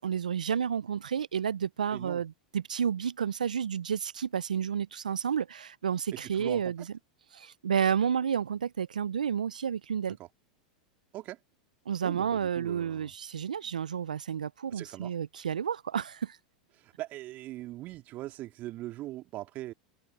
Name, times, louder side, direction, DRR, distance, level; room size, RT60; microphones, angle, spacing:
voice 1, 0.0-6.9 7.3-10.2 11.9-16.4, right 7 dB, 85° right, 0.7 m, -31 dB
voice 2, 1.9-2.2 6.2-6.6 10.2-10.3 11.1-11.4 12.0-13.1 14.7-15.1 16.8-19.7, right 16 dB, 45° right, 3.1 m, -41 dB
hypercardioid pair, 95°, 4 cm